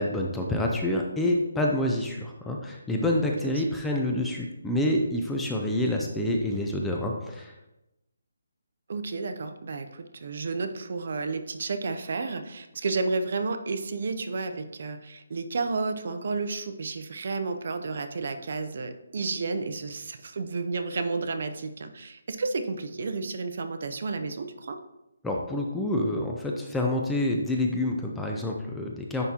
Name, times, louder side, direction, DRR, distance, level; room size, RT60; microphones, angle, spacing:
voice 1, 0.0-7.5 25.2-29.2, left 1 dB, 5° left, 0 dB, 0.3 m, -27 dB
voice 2, 8.9-24.8, right 3 dB, 45° right, 8 dB, 0.5 m, -32 dB
9.7 x 3.6 x 2.9 m, 0.94 s
hypercardioid pair, 175°, 0 cm